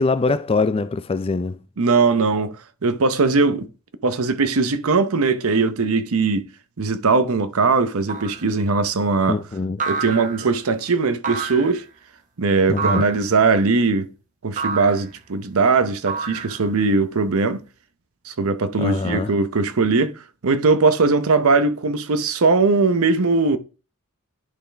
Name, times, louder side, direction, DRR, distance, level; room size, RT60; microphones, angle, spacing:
voice 1, 0.0-1.6 9.3-9.8 12.7-13.1 18.8-19.3, left 3 dB, 25° left, 0.4 m, -23 dB
voice 2, 1.8-2.5 2.8-3.7 4.0-6.5 6.8-9.4 9.9-11.8 12.4-14.1 14.4-17.6 18.2-23.6, right 4 dB, 75° right, 0.7 m, -20 dB
sound 1, 8.1-8.5 9.8-10.6 11.2-11.8 12.8-13.3 14.6-15.1 16.1-16.8, right 5 dB, 35° right, 1.1 m, -28 dB
11.0 x 3.9 x 3.4 m
head